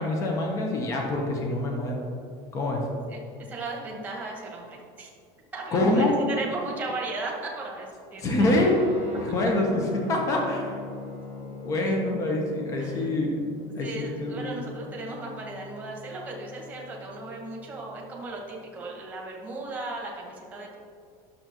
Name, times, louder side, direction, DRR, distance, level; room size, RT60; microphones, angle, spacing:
voice 1, 0.0-2.1 2.5-2.8 5.7-6.1 8.2-8.7 9.2-10.8 11.6-13.4 13.8-14.6, left 2 dB, 25° left, 0 dB, 0.9 m, -25 dB
voice 2, 3.1-5.1 5.5-8.5 11.8-12.0 12.8-13.1 13.8-20.8, right 2 dB, 10° right, -2 dB, 1.3 m, -36 dB
Guitar, 8.4-18.2, left 5 dB, 45° left, 2.1 m, -43 dB
11.0 x 6.8 x 3.0 m, 2.4 s
cardioid pair, 175°, 13 cm